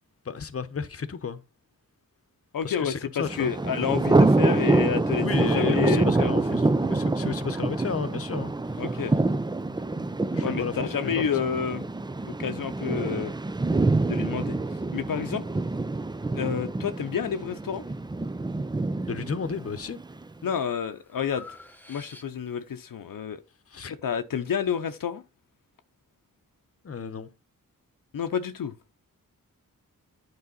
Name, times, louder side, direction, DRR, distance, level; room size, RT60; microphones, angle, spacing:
voice 1, 0.2-1.4 2.6-3.5 5.2-9.2 9.7-11.5 19.1-20.0 23.7-23.9 26.8-27.3, left 6 dB, 45° left, 0.9 m, -33 dB
voice 2, 2.5-3.0 3.4-5.2 5.5-6.4 8.8-9.1 10.4-11.9 12.3-13.3 14.1-14.6 14.9-15.4 16.3-17.8 20.4-21.4 21.9-23.4 23.9-25.2 28.1-28.7, left 7 dB, 75° left, 0.8 m, -29 dB
Thunder, 3.2-20.2, right 2 dB, 15° right, 0.4 m, -26 dB
Breathing, 19.4-19.9 20.4-22.7, left 2 dB, 5° left, 1.1 m, -49 dB
9.6 x 4.8 x 4.0 m
wide cardioid pair, 95°, 34 cm